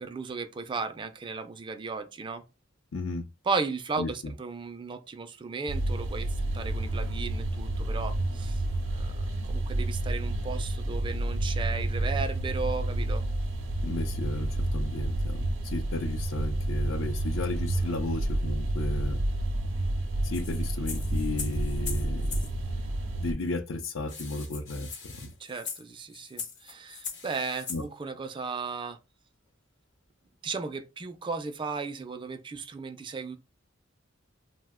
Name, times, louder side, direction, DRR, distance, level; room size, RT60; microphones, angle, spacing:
voice 1, 0.0-2.4 3.5-8.6 8.9-13.3 25.4-29.0 30.4-33.4, right 4 dB, 25° right, 0.3 m, -35 dB
voice 2, 2.9-3.3 4.0-4.3 13.8-19.2 20.2-22.4 23.2-25.3 27.7-27.8, left 2 dB, 85° left, 0.5 m, -34 dB
sound 1, 5.7-23.3, right 1 dB, 70° right, 0.5 m, -30 dB
sound 2, 20.3-22.5 23.5-23.6 23.8-23.9 24.1-27.8, left 6 dB, 40° left, 0.6 m, -40 dB
sound 3, 24.1-25.5 27.0-27.8 29.5-29.6 31.0-31.1, left 4 dB, 65° left, 0.9 m, -50 dB
2.7 x 2.1 x 3.5 m
head